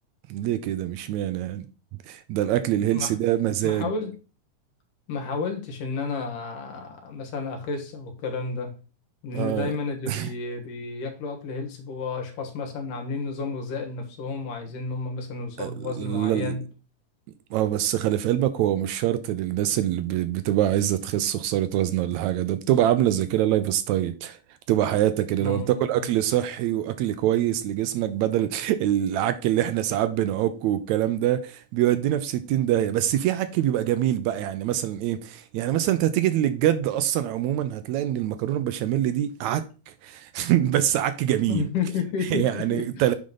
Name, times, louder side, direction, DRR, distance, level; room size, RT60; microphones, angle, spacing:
voice 1, 0.3-1.7 2.1-3.9 9.3-9.7 10.1-10.3 15.6-15.7 16.0-16.6 17.5-24.4 24.7-41.7 42.3-43.1, right 12 dB, 80° right, 1.7 m, -24 dB
voice 2, 3.6-4.1 5.1-8.7 9.2-16.6 25.4-26.0 40.5-40.6 41.5-42.8, left 4 dB, 80° left, 3.1 m, -31 dB
8.6 x 5.6 x 3.8 m
omnidirectional pair, 3.8 m